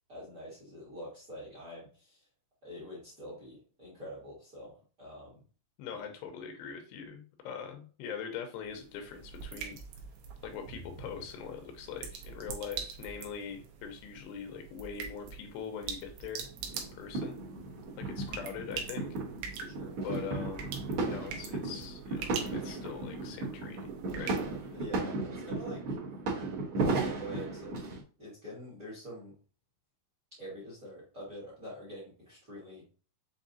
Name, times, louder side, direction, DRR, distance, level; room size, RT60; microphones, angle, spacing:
voice 1, 0.1-2.2 2.6-5.4 19.6-19.9 24.7-25.9 26.7-27.8 28.2-29.3 30.4-32.8, equal, 40° right, -5 dB, 1.3 m, -45 dB
voice 2, 5.8-9.8 10.4-17.4 18.0-19.1 20.0-20.8 21.0-23.9 24.1-24.3, left 7 dB, 90° left, 5 dB, 3.0 m, -42 dB
sound 1, 8.6-25.1, right 6 dB, 75° right, 2.7 m, -44 dB
sound 2, 16.6-28.0, right 3 dB, 55° right, 1.4 m, -35 dB
7.1 x 2.7 x 2.7 m, 0.38 s
omnidirectional pair, 4.7 m